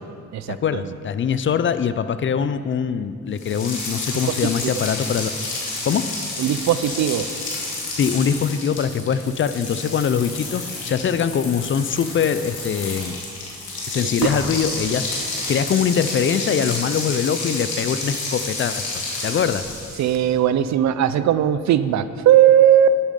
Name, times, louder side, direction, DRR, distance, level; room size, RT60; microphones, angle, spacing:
voice 1, 0.5-5.3 5.8-6.0 8.0-13.1 13.9-18.9 19.2-19.7, left 7 dB, 40° left, 12 dB, 0.5 m, -23 dB
sound 1, 3.4-20.2, left 2 dB, 85° left, 2.8 m, -30 dB
voice 2, 6.4-7.3 20.0-22.9, right 11 dB, 65° right, 14 dB, 0.6 m, -17 dB
11.0 x 9.1 x 5.3 m, 2.4 s
cardioid pair, 90°, 30 cm